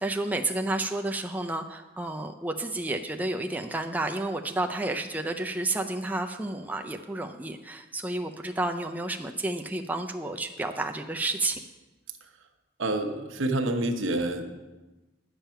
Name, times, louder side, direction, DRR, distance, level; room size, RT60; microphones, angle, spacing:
voice 1, 0.0-11.6, right 2 dB, 10° right, 4 dB, 0.4 m, -31 dB
voice 2, 12.8-14.5, right 2 dB, 85° right, 5 dB, 1.0 m, -28 dB
10.0 x 7.3 x 5.7 m, 1.2 s
head